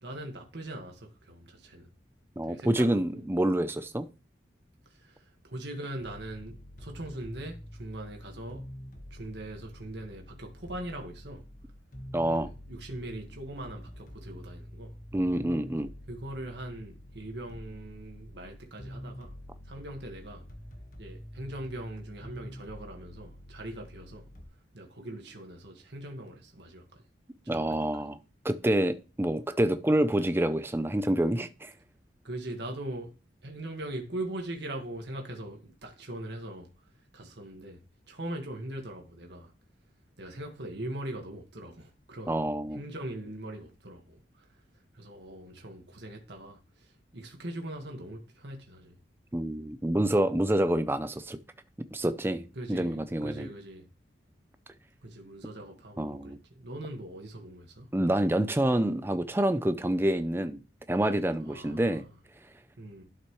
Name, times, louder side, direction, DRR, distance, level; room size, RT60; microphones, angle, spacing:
voice 1, 0.0-1.9 2.5-3.2 5.0-8.6 9.1-11.4 12.2-15.0 16.1-19.3 19.7-20.4 21.0-24.3 24.7-27.0 27.4-28.0 32.2-33.1 33.4-36.7 37.1-37.8 38.1-39.5 40.2-42.4 42.7-44.4 44.9-46.9 47.1-49.0 52.5-53.8 55.0-57.9 61.4-62.1 62.8-63.0, right 1 dB, 65° right, 1.7 m, -41 dB
voice 2, 2.4-4.1 12.1-12.5 15.1-15.9 27.5-28.2 28.4-31.7 42.3-42.8 49.3-51.4 51.9-53.5 56.0-56.4 57.9-60.6 60.9-62.0, right 1 dB, 10° right, 0.5 m, -27 dB
sound 1, 6.0-24.4, equal, 45° left, 1.4 m, -47 dB
11.5 x 5.8 x 3.1 m
head